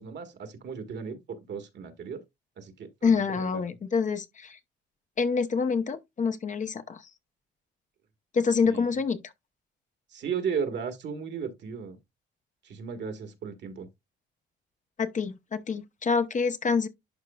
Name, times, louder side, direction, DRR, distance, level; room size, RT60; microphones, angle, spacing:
voice 1, 0.0-2.2 2.6-3.7 8.6-8.9 10.1-12.0 12.6-13.9, right 6 dB, 60° right, 1.5 m, -35 dB
voice 2, 3.0-4.6 5.2-7.0 8.3-9.2 15.0-16.9, left 5 dB, 40° left, 0.8 m, -26 dB
11.0 x 4.5 x 2.3 m
cardioid pair, 90°, 20 cm